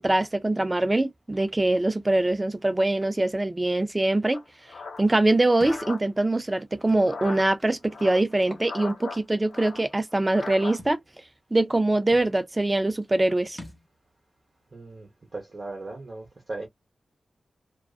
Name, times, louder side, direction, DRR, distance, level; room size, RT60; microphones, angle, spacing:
voice 1, 0.0-4.4 5.0-11.0 11.5-13.6, right 2 dB, 15° right, 0.4 m, -23 dB
sound 1, 4.3-6.0 6.9-7.5 7.9-9.2 9.5-10.8, left 4 dB, 80° left, 1.0 m, -38 dB
Thump thud, 5.6-5.9 6.9-7.0 8.4-8.7 9.1-9.2 10.8-11.0 11.8-11.9 12.1-12.3 13.6-13.9, equal, ahead, 0.7 m, -43 dB
voice 2, 14.7-16.7, right 2 dB, 35° right, 0.8 m, -38 dB
2.4 x 2.3 x 2.3 m
wide cardioid pair, 145°, 0 cm